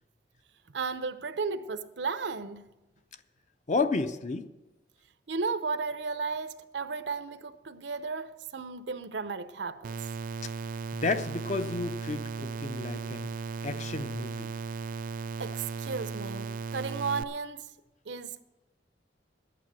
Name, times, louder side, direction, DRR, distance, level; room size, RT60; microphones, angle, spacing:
voice 1, 0.7-2.7 5.3-10.0 15.4-17.7 18.1-18.4, right 4 dB, 75° right, 0.7 m, -34 dB
voice 2, 3.7-4.5 10.4-10.5 10.9-13.3 13.6-14.5, left 3 dB, 45° left, 0.6 m, -31 dB
sound 1, 9.8-17.2, right 5 dB, 50° right, 0.4 m, -36 dB
11.0 x 9.0 x 7.6 m
head